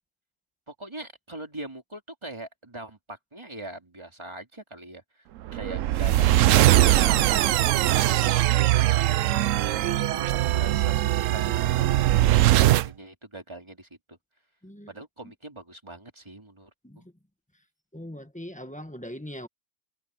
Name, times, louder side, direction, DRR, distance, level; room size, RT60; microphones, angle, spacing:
voice 1, 0.7-7.5 8.0-9.4 10.0-14.2 14.9-16.7 17.0-17.1, right 2 dB, 20° right, 2.8 m, -42 dB
sound 1, 5.5-12.9, right 14 dB, 90° right, 1.0 m, -21 dB
voice 2, 17.9-19.5, equal, 5° left, 1.3 m, -40 dB
omnidirectional pair, 1.3 m